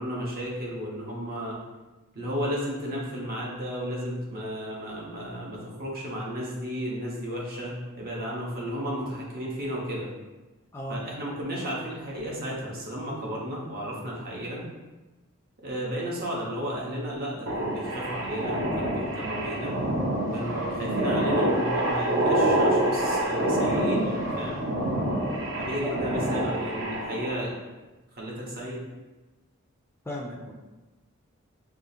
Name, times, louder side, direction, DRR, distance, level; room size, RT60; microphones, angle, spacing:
voice 1, 0.0-1.6 2.1-10.1 10.9-14.6 15.6-19.8 20.3-24.6 25.6-27.5 28.1-28.8, equal, 45° right, -4 dB, 0.9 m, -33 dB
sound 1, 17.5-27.4, right 1 dB, 65° right, 0.7 m, -27 dB
voice 2, 30.1-30.5, equal, 10° left, -1 dB, 0.3 m, -35 dB
4.9 x 2.4 x 2.7 m, 1.1 s
head